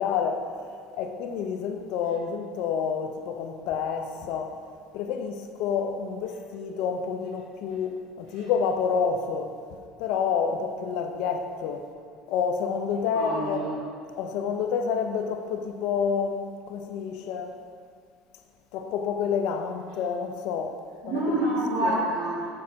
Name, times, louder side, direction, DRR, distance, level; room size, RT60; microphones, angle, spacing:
voice 1, 0.0-4.6 4.9-11.9 12.3-13.6 14.2-17.6 18.7-21.2 21.8-21.9, left 6 dB, 70° left, 0.5 m, -29 dB
voice 2, 13.1-13.7 21.1-22.5, right 1 dB, 80° right, 1.4 m, -27 dB
5.9 x 5.3 x 3.7 m
hypercardioid pair, 80°, 0 cm